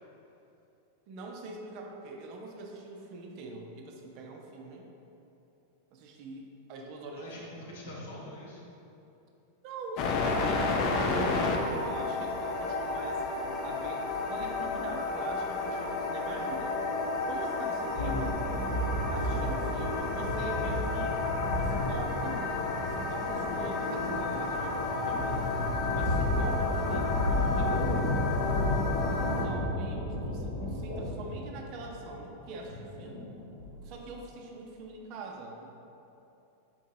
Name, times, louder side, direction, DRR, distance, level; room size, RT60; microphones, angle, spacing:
voice 1, 1.1-4.9 5.9-7.6 9.6-13.2 13.6-16.8 17.3-18.4 19.1-21.2 21.5-25.5 25.9-28.0 29.2-33.3 33.8-35.7, right 3 dB, 45° right, 1 dB, 0.4 m, -43 dB
voice 2, 7.2-8.7 18.3-19.3 25.9-26.1, left 1 dB, 60° left, -4 dB, 0.7 m, -46 dB
sound 1, 10.0-29.5, left 3 dB, 40° left, 0.3 m, -32 dB
sound 2, 18.0-34.1, left 1 dB, 75° left, 1.0 m, -33 dB
4.4 x 2.7 x 2.7 m, 2.8 s
figure-of-eight pair, 90°, 0 cm